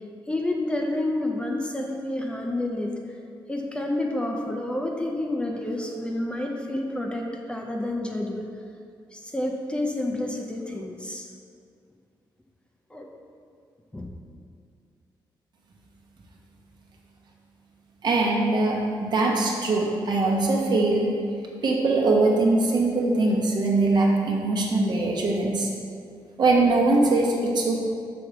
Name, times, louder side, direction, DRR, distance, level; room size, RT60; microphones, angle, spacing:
voice 1, 0.3-2.9 3.5-8.5 9.1-11.3 12.9-13.1 13.9-14.1, left 1 dB, 10° left, 1 dB, 0.5 m, -29 dB
voice 2, 18.0-21.1 21.6-25.7 26.4-27.8, right 2 dB, 60° right, -1 dB, 0.9 m, -22 dB
6.0 x 3.2 x 5.0 m, 2.3 s
cardioid pair, 110°, 9 cm